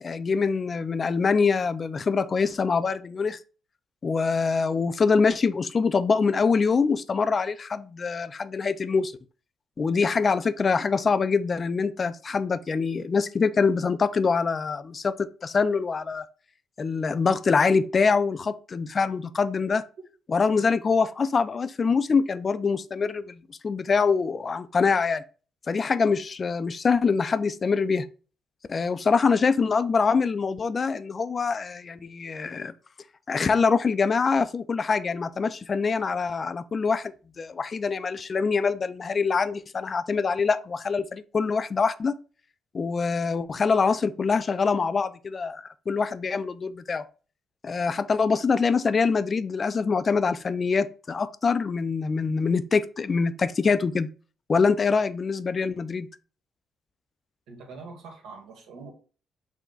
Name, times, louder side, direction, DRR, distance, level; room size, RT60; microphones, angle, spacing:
voice 1, 0.0-3.4 4.0-9.1 9.8-16.3 16.8-19.8 20.3-25.2 25.7-28.1 28.7-32.7 33.3-42.1 42.7-47.0 47.6-54.1 54.5-56.1, left 5 dB, 40° left, 0.4 m, -24 dB
voice 2, 57.5-58.9, right 4 dB, 85° right, 1.5 m, -43 dB
6.0 x 2.2 x 3.9 m
cardioid pair, 90°, 0 cm